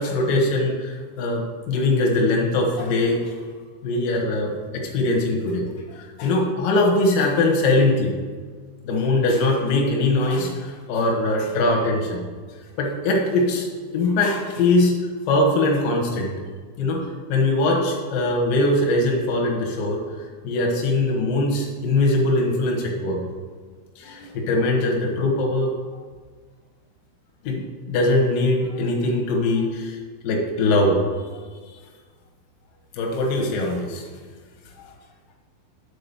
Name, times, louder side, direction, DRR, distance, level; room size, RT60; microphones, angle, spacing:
voice 1, 0.0-3.4 3.8-8.2 8.8-12.2 12.8-13.7 13.9-14.9 15.3-16.3 16.8-20.0 20.4-23.2 24.0-25.7 27.4-27.6 27.9-30.0 30.2-31.0 32.9-34.0, left 2 dB, 75° left, 0 dB, 2.0 m, -21 dB
9.6 x 4.5 x 6.9 m, 1.5 s
omnidirectional pair, 5.9 m